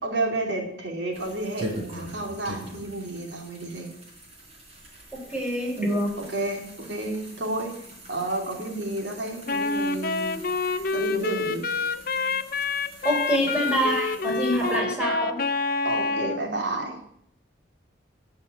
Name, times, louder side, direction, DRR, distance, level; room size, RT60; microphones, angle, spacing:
voice 1, 0.0-3.9 6.2-10.3 10.9-11.7 14.6-14.8 15.8-17.0, right 2 dB, 70° right, 1 dB, 2.5 m, -31 dB
sound 1, 1.1-14.8, right 1 dB, 35° right, 3.9 m, -43 dB
voice 2, 5.1-6.1 13.0-15.4, equal, 5° right, -1 dB, 3.8 m, -25 dB
Wind instrument woodwind instrument, 9.5-16.4, left 3 dB, 50° left, 0.7 m, -27 dB
14.5 x 5.7 x 8.3 m, 0.72 s
head